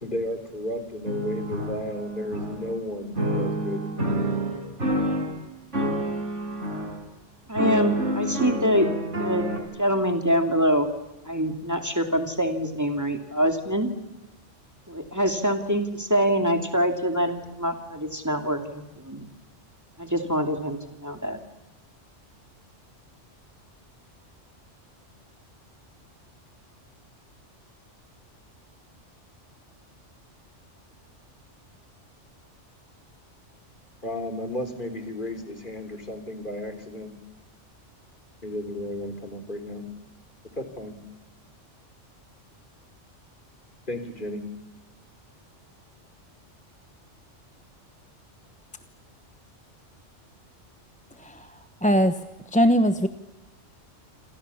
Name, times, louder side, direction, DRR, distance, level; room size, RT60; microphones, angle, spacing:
voice 1, 0.0-3.8 34.0-37.1 38.4-39.8 40.6-41.0 43.9-44.4, left 1 dB, 40° left, 8 dB, 3.8 m, -33 dB
sound 1, 1.0-2.8 3.2-5.4 5.7-7.0 7.6-9.6, equal, 75° right, 5.4 m, -28 dB
voice 2, 7.5-8.9 9.2-9.5 9.8-10.9 11.2-13.9 14.9-19.3 20.0-21.4, equal, 15° right, 5 dB, 2.7 m, -25 dB
voice 3, 51.8-52.2 52.5-53.1, equal, 5° left, 9 dB, 0.9 m, -20 dB
28.5 x 26.5 x 7.1 m, 1.0 s
omnidirectional pair, 1.3 m